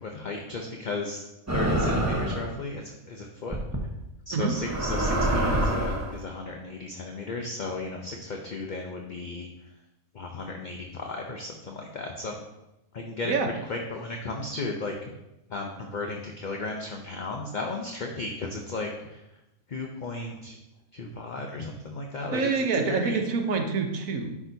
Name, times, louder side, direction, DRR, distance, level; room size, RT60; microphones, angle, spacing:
voice 1, 0.0-1.3 1.5-3.6 4.3-9.5 10.1-12.4 12.9-13.3 13.6-14.9 15.5-19.2 19.7-20.6 20.9-23.2, left 3 dB, 45° left, 2 dB, 0.6 m, -35 dB
sound 1, 1.5-2.5 3.5-3.8 4.5-6.1, right 1 dB, 15° right, 0.8 m, -26 dB
voice 2, 22.3-24.4, right 4 dB, 70° right, 4 dB, 1.3 m, -26 dB
10.0 x 6.1 x 2.7 m, 0.92 s
omnidirectional pair, 1.5 m